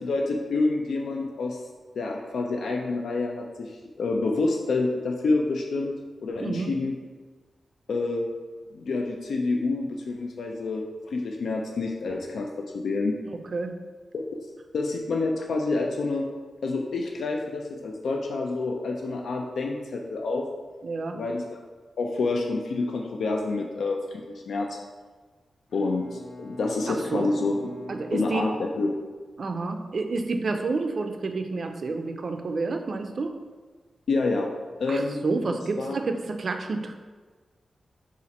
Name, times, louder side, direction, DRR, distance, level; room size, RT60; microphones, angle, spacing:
voice 1, 0.0-1.6 1.9-5.9 6.2-6.9 7.9-8.2 8.7-13.2 14.1-14.2 14.7-16.3 16.6-20.5 21.1-21.6 22.0-24.8 25.7-27.7 28.1-29.0 34.1-34.5 34.8-35.2 35.5-36.0, left 3 dB, 85° left, 1 dB, 0.3 m, -28 dB
voice 2, 6.4-6.7 13.5-13.7 20.8-21.2 26.9-27.3 27.9-28.6 29.4-33.4 34.9-36.9, right 3 dB, 50° right, 6 dB, 0.4 m, -29 dB
Bowed string instrument, 25.7-29.3, left 2 dB, 60° left, 0.9 m, -44 dB
4.1 x 2.4 x 4.0 m, 1.4 s
wide cardioid pair, 120°, 0 cm